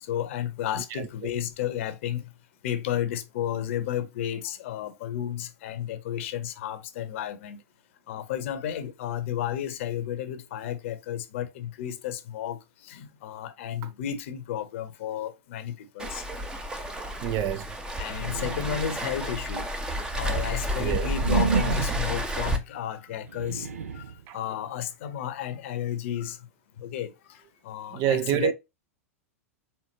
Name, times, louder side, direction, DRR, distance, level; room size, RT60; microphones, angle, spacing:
voice 1, 0.1-2.2 2.6-7.6 8.1-12.6 12.8-16.2 18.0-19.7 20.1-23.7 23.9-24.0 24.3-26.4 26.8-27.4 27.6-28.5, left 10 dB, 60° left, 0.9 m, -32 dB
Waves surf, 16.0-22.6, equal, 10° right, 0.8 m, -30 dB
voice 2, 17.2-17.7 20.8-21.1 24.3-24.4 27.9-28.5, right 11 dB, 40° right, 0.6 m, -26 dB
sound 1, 18.1-19.1 19.8-22.2 23.1-24.2, right 6 dB, 75° right, 0.7 m, -30 dB
4.6 x 3.6 x 2.9 m
figure-of-eight pair, 95°, 8 cm